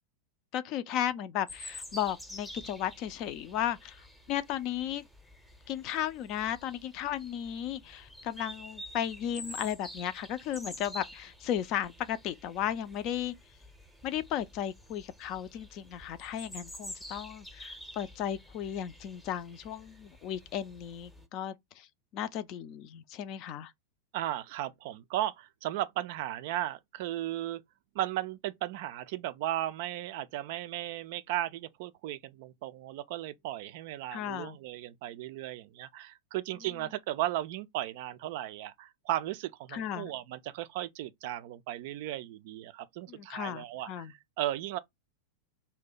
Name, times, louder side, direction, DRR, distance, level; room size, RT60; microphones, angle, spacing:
voice 1, 0.5-5.0 5.7-13.3 14.0-21.9 22.1-23.7 34.1-34.6 39.7-40.1 43.1-44.1, left 10 dB, 40° left, 0.4 m, -35 dB
sound 1, 1.5-21.3, left 1 dB, 5° left, 0.7 m, -49 dB
voice 2, 24.1-27.6 27.9-44.8, right 14 dB, 50° right, 0.3 m, -36 dB
2.7 x 2.1 x 3.8 m
figure-of-eight pair, 90°, 0 cm